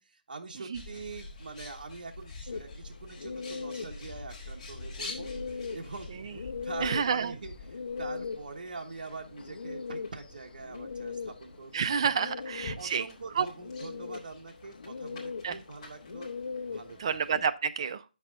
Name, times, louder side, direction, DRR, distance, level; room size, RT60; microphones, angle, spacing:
voice 1, 0.0-11.8 12.4-12.5 12.7-16.3 16.7-17.2, right 4 dB, 60° right, 1.1 m, -44 dB
Bird, 0.7-17.5, left 3 dB, 35° left, 2.2 m, -47 dB
sound 1, 2.5-17.4, left 5 dB, 80° left, 0.5 m, -41 dB
voice 2, 6.8-7.3 11.7-13.0 13.4-13.5 15.4-15.6 17.0-18.0, right 6 dB, 35° right, 0.5 m, -29 dB
7.8 x 6.1 x 3.6 m
hypercardioid pair, 170°, 5 cm